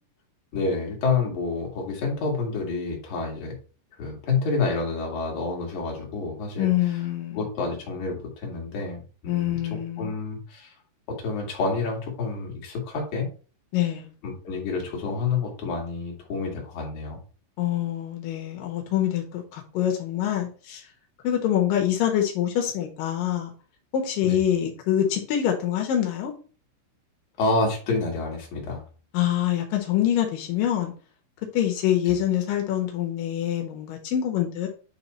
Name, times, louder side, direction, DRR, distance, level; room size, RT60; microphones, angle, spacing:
voice 1, 0.5-3.6 4.0-7.0 7.3-9.6 10.0-10.7 11.1-13.3 14.2-17.2 24.2-24.4 27.4-28.8 32.1-32.2, left 4 dB, 50° left, -1 dB, 2.8 m, -28 dB
voice 2, 6.6-7.4 9.3-10.1 13.7-14.1 17.6-20.8 21.2-23.5 23.9-26.3 29.1-30.9 31.5-34.7, left 11 dB, 85° left, 3 dB, 1.9 m, -25 dB
9.6 x 3.3 x 4.2 m, 0.38 s
omnidirectional pair, 5.6 m